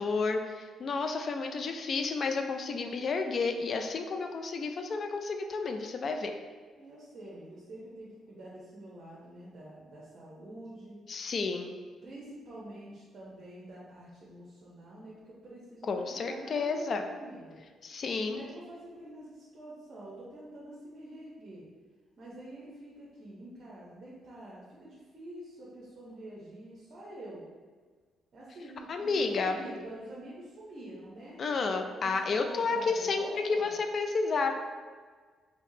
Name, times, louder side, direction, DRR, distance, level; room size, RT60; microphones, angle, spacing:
voice 1, 0.0-6.3 11.1-11.7 15.9-17.0 17.8-18.4 28.9-29.6 31.4-34.5, left 4 dB, 50° left, 5 dB, 0.3 m, -31 dB
voice 2, 6.8-11.0 12.0-17.6 18.2-21.6 22.2-27.4 28.3-31.4 32.0-33.7, right 1 dB, 50° right, -6 dB, 0.8 m, -46 dB
3.4 x 2.8 x 2.7 m, 1.5 s
cardioid pair, 90°, 0 cm